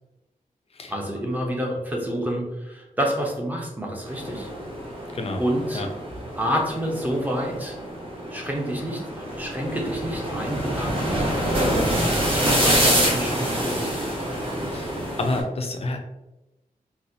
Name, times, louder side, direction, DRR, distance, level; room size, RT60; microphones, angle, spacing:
voice 1, 0.9-4.5 5.4-5.8 6.4-7.8 8.3-14.1, equal, 10° right, -1 dB, 0.7 m, -29 dB
sound 1, 4.1-15.4, equal, 35° right, 1.1 m, -26 dB
voice 2, 14.7-16.0, left 2 dB, 45° left, 3 dB, 0.5 m, -29 dB
4.0 x 2.3 x 2.7 m, 1.0 s
wide cardioid pair, 135°, 14 cm